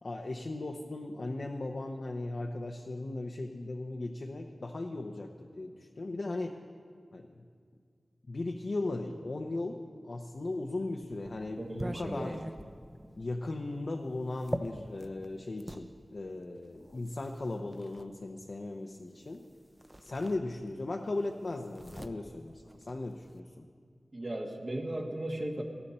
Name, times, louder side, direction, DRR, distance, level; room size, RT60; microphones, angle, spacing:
voice 1, 0.0-6.6 7.1-7.4 8.3-12.4 13.1-19.4 20.0-23.6, left 2 dB, 60° left, 2 dB, 0.8 m, -37 dB
sound 1, 10.5-15.9 16.8-18.1 19.3-19.5 19.8-20.9 21.2-23.4, right 1 dB, 10° right, 0.7 m, -42 dB
voice 2, 11.6-12.3 13.0-13.1 24.1-25.6, right 1 dB, 40° right, 1 dB, 1.5 m, -36 dB
18.5 x 13.5 x 4.3 m, 2.1 s
wide cardioid pair, 80°, 0 cm